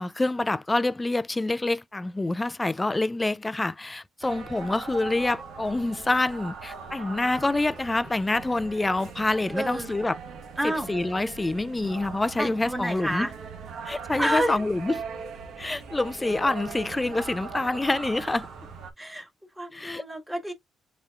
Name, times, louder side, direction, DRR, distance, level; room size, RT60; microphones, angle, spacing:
voice 1, 0.0-10.2 10.6-13.3 13.9-14.9 15.6-18.5 19.7-20.0, left 2 dB, 15° left, 0.4 m, -27 dB
sound 1, 4.2-18.9, right 5 dB, 75° right, 1.5 m, -40 dB
voice 2, 9.5-9.9 10.6-10.9 12.4-13.3 14.2-14.6 19.0-19.3 19.6-20.5, right 1 dB, 10° right, 1.7 m, -29 dB
7.1 x 3.1 x 2.4 m
cardioid pair, 90°, 0 cm